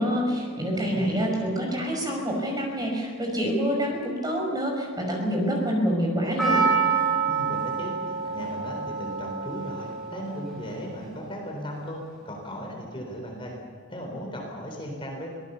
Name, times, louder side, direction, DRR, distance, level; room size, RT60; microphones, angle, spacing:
voice 1, 0.0-6.6, equal, 20° right, 0 dB, 5.4 m, -26 dB
voice 2, 0.7-1.2 7.3-13.5 13.9-15.3, equal, 25° left, 0 dB, 3.8 m, -37 dB
Percussion, 6.4-10.8 11.0-11.1, right 5 dB, ahead, 7.8 m, -27 dB
24.5 x 18.5 x 6.9 m, 2.1 s
head